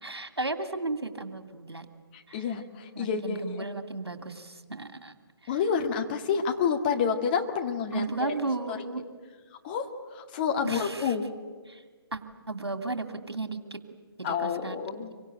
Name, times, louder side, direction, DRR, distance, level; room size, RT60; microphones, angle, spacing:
voice 1, 0.0-1.9 2.3-2.5 2.9-5.1 5.4-5.5 7.9-9.0 10.6-11.1 11.7-11.8 12.1-12.2 12.5-13.8 14.2-14.8, right 3 dB, 75° right, 7 dB, 2.6 m, -34 dB
voice 2, 2.1-3.7 5.5-8.3 8.7-8.8 9.6-11.3 14.2-15.1, left 6 dB, 25° left, 3 dB, 1.8 m, -29 dB
26.0 x 23.5 x 9.3 m, 1.5 s
figure-of-eight pair, 145°, 13 cm